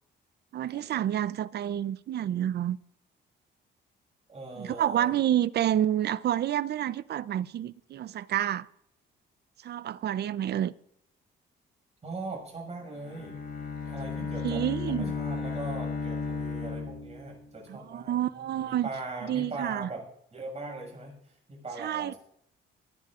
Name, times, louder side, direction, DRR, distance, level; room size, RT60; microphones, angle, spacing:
voice 1, 0.5-2.8 4.6-8.7 9.6-10.7 14.4-15.1 17.7-18.9 19.2-19.9 21.8-22.1, right 11 dB, 55° right, 0.5 m, -29 dB
voice 2, 4.3-5.1 12.0-13.4 13.8-20.0 20.3-22.2, right 3 dB, 35° right, 6.2 m, -40 dB
Bowed string instrument, 12.8-17.6, left 5 dB, 55° left, 5.0 m, -34 dB
25.0 x 10.5 x 2.5 m
cardioid pair, 90°, 20 cm